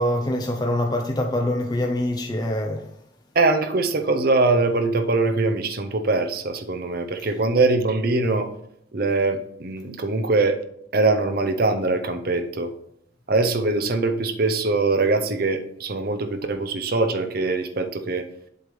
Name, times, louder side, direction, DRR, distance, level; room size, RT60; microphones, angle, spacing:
voice 1, 0.0-2.8, left 1 dB, 20° left, 0.5 m, -24 dB
voice 2, 3.3-8.5 8.9-10.6 10.9-12.7 13.3-18.3, right 3 dB, 50° right, 0.7 m, -22 dB
7.8 x 3.3 x 5.4 m
head